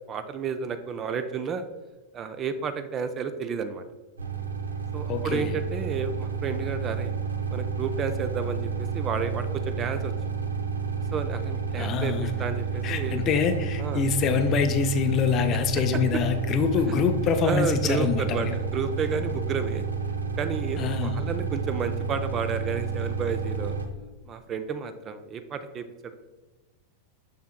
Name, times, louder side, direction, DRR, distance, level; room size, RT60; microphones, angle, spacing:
voice 1, 0.1-1.7 2.1-3.8 4.9-7.1 7.5-10.1 11.1-13.2 13.8-14.0 17.5-19.9 20.4-23.8 24.3-26.1, right 5 dB, 30° right, 10 dB, 0.4 m, -31 dB
sound 1, 4.2-23.9, right 5 dB, 75° right, 0.6 m, -30 dB
voice 2, 5.1-5.5 11.8-12.3 12.8-18.6 20.8-21.2, left 6 dB, 35° left, 8 dB, 0.5 m, -25 dB
6.7 x 6.3 x 2.2 m, 1.2 s
figure-of-eight pair, 90°, 0 cm